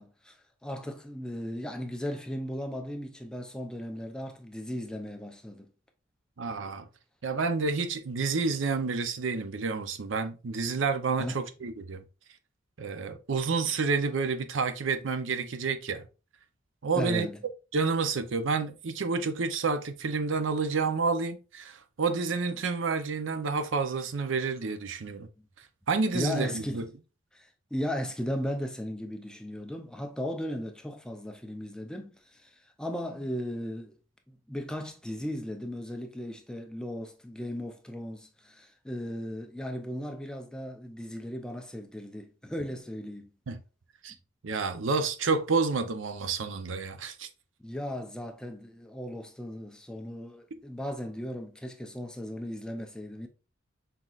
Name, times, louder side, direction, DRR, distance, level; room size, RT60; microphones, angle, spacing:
voice 1, 0.0-5.7 11.2-11.4 17.0-17.4 26.1-26.9 27.3-33.9 34.3-43.3 47.6-53.3, equal, 5° left, 0.5 m, -36 dB
voice 2, 6.4-6.9 7.2-12.0 12.8-16.1 16.8-17.3 17.7-25.3 25.9-26.9 43.5-43.6 44.0-44.1 44.4-47.3, right 4 dB, 75° right, 0.6 m, -29 dB
5.8 x 3.7 x 2.4 m
head